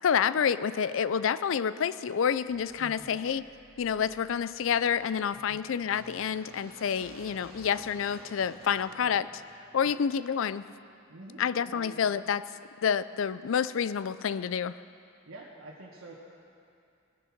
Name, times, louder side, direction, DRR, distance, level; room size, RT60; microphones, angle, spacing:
voice 1, 0.0-3.5 3.8-9.4 9.7-10.6 11.4-12.4 12.8-14.8, left 7 dB, 65° left, 16 dB, 0.4 m, -28 dB
sound 1, 2.5-10.5, right 1 dB, 45° right, 2.9 m, -54 dB
voice 2, 2.8-3.2 5.3-5.6 9.8-10.0 11.1-11.4 11.7-12.0 15.2-16.1, right 2 dB, 85° right, -5 dB, 1.6 m, -47 dB
19.5 x 10.0 x 5.9 m, 2.5 s
head